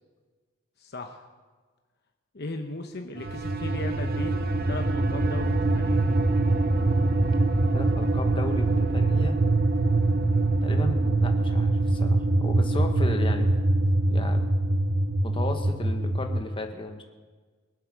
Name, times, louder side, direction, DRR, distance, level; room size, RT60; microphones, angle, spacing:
voice 1, 0.8-1.3 2.3-4.3 4.7-6.0, left 2 dB, 50° left, 4 dB, 0.9 m, -37 dB
sound 1, 3.2-16.5, right 2 dB, 45° right, 0.7 m, -24 dB
voice 2, 7.7-9.4 10.6-13.5 13.8-14.4 15.2-17.0, left 1 dB, 25° left, 4 dB, 1.3 m, -35 dB
23.5 x 8.0 x 6.3 m, 1.4 s
head